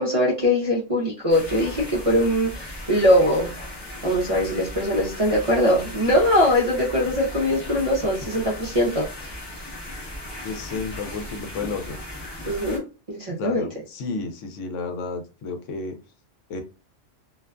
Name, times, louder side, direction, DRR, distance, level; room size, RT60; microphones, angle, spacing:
voice 1, 0.0-3.5 4.0-9.4 12.4-12.8 13.1-13.7, equal, 45° right, -4 dB, 0.4 m, -21 dB
sound 1, 1.3-12.8, left 1 dB, 25° left, 0.6 m, -37 dB
voice 2, 10.4-12.0 13.4-15.9 16.5-16.6, left 4 dB, 85° left, 5 dB, 0.9 m, -31 dB
2.5 x 2.2 x 2.3 m, 0.32 s
omnidirectional pair, 1.3 m